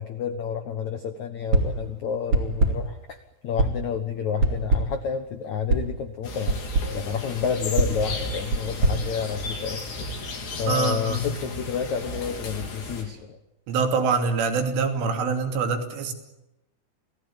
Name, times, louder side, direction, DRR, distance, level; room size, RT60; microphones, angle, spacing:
voice 1, 0.0-9.9 10.5-13.4, left 7 dB, 85° left, 8 dB, 1.6 m, -30 dB
sound 1, 1.5-1.9 2.3-3.0 3.6-3.9 4.4-5.1 5.7-6.0 6.5-7.0 7.8-9.8, right 2 dB, 35° right, 3.1 m, -25 dB
sound 2, 6.2-13.0, left 2 dB, 60° left, 6.1 m, -34 dB
voice 2, 10.7-11.3 13.7-16.1, right 4 dB, 80° right, 5 dB, 5.3 m, -25 dB
28.5 x 18.0 x 8.8 m, 0.93 s
omnidirectional pair, 5.6 m